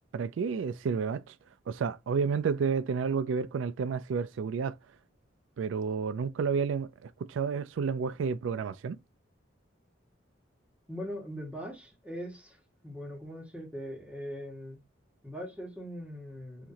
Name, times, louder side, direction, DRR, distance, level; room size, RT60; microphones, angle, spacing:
voice 1, 0.1-1.3 1.7-4.8 5.6-9.0, right 5 dB, 85° right, 0.4 m, -30 dB
voice 2, 10.9-14.8 15.2-16.7, equal, 5° right, 1.5 m, -41 dB
4.0 x 2.9 x 2.8 m
head